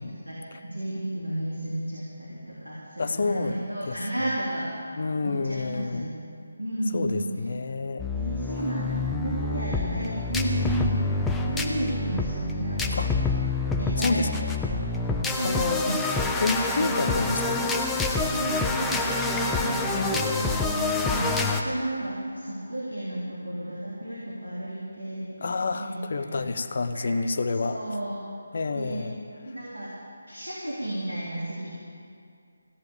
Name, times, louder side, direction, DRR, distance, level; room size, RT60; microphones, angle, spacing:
voice 1, 0.0-4.7 5.2-6.2 6.6-7.3 8.1-11.2 11.4-13.3 13.6-14.3 14.6-16.0 16.7-17.0 18.3-25.5 25.7-26.4 26.9-27.1 27.6-28.2 28.8-29.0 29.4-29.9 30.3-31.7, right 1 dB, 75° right, -7 dB, 3.4 m, -33 dB
voice 2, 3.0-3.6 3.8-4.0 5.0-6.1 6.9-8.1 12.9-13.1 14.0-14.3 15.4-15.8 16.4-17.7 19.9-20.4 25.4-27.8 28.5-29.2, left 3 dB, 45° left, 11 dB, 0.7 m, -29 dB
sound 1, 8.0-21.6, left 3 dB, 5° left, 0.7 m, -27 dB
16.0 x 7.8 x 8.8 m, 2.4 s
figure-of-eight pair, 150°, 0 cm